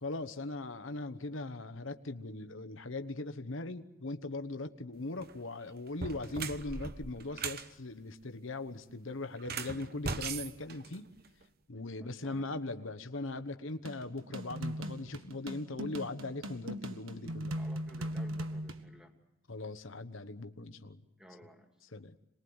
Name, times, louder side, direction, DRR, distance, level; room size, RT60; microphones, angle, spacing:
voice 1, 0.0-11.1 11.7-17.6 19.5-21.0 21.9-22.1, left 2 dB, 70° left, 9 dB, 1.2 m, -40 dB
sound 1, 5.1-5.3 5.9-7.7 9.4-11.4, right 5 dB, 45° right, 1.0 m, -39 dB
voice 2, 11.9-12.5 17.6-19.2 21.2-21.7, equal, 5° right, 4 dB, 2.5 m, -55 dB
sound 2, 13.8-18.8, equal, 80° right, 1.6 m, -39 dB
27.5 x 21.0 x 8.0 m, 1.0 s
head